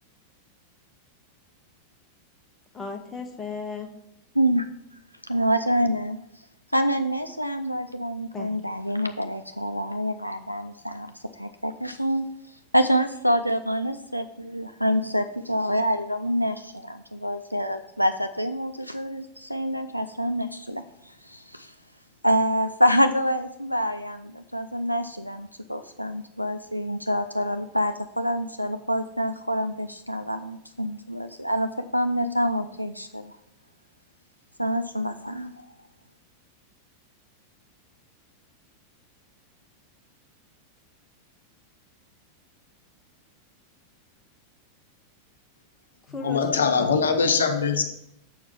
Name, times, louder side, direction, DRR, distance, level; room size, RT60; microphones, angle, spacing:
voice 1, 2.7-3.9 8.3-8.7 46.1-46.9, left 4 dB, 15° left, 4 dB, 1.0 m, -36 dB
voice 2, 4.4-4.7 5.3-6.2 6.7-12.2 12.7-21.7 22.2-33.4 34.6-35.5, equal, 90° left, 7 dB, 0.3 m, -26 dB
voice 3, 46.2-47.8, left 5 dB, 70° left, 6 dB, 0.8 m, -22 dB
7.2 x 4.7 x 5.5 m, 0.76 s
figure-of-eight pair, 90°, 0 cm